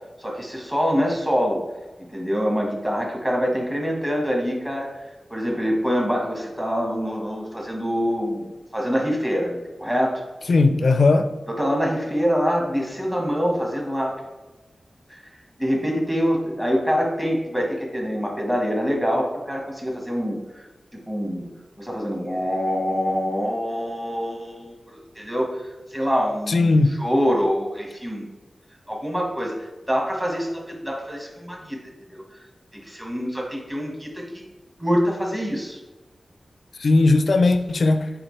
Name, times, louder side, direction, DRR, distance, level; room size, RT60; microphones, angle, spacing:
voice 1, 0.2-1.6 2.0-10.2 11.5-14.2 15.1-15.2 15.6-20.6 20.9-21.5 21.8-25.6 25.9-28.2 28.9-29.5 29.9-31.8 32.1-32.2 32.7-34.2 34.8-35.8, equal, 10° right, 0 dB, 1.4 m, -25 dB
voice 2, 10.5-11.3 26.5-27.0 36.8-38.1, left 3 dB, 65° left, 8 dB, 0.4 m, -17 dB
7.8 x 3.8 x 3.2 m, 1.1 s
wide cardioid pair, 110°, 0 cm